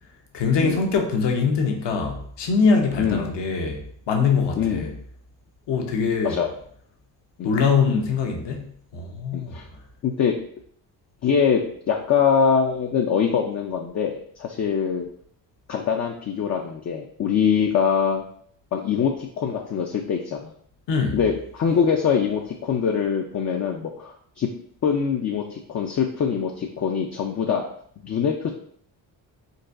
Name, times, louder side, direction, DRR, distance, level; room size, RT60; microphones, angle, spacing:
voice 1, 0.3-4.9 5.7-6.4 7.4-8.6 8.9-9.6 20.9-21.2, left 5 dB, 60° left, 0.8 m, -23 dB
voice 2, 3.0-3.3 4.6-5.0 6.2-6.5 7.4-7.5 9.3-9.7 10.0-10.4 11.2-15.1 15.7-18.2 18.7-20.5 21.1-24.5 24.8-27.6 28.0-28.5, left 7 dB, 35° left, 0.4 m, -23 dB
3.9 x 2.2 x 2.5 m
supercardioid pair, 60°, 48 cm